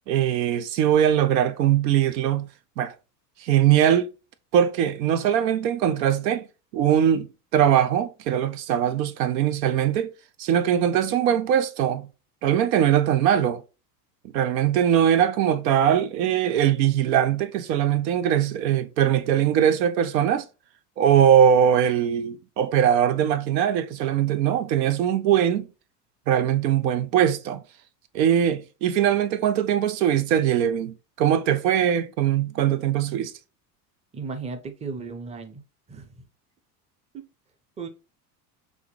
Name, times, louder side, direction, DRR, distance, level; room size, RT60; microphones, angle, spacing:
voice 1, 0.1-2.5 2.8-2.9 3.4-4.1 4.5-6.4 6.7-7.3 7.5-10.1 10.4-12.1 12.4-13.6 14.3-20.4 21.0-25.7 26.3-27.6 28.1-33.3, right 9 dB, 85° right, 0.6 m, -21 dB
voice 2, 34.1-35.6 35.9-36.2 37.1-37.2 37.8-37.9, right 4 dB, 15° right, 0.5 m, -35 dB
3.5 x 2.6 x 3.1 m
hypercardioid pair, 80°, 49 cm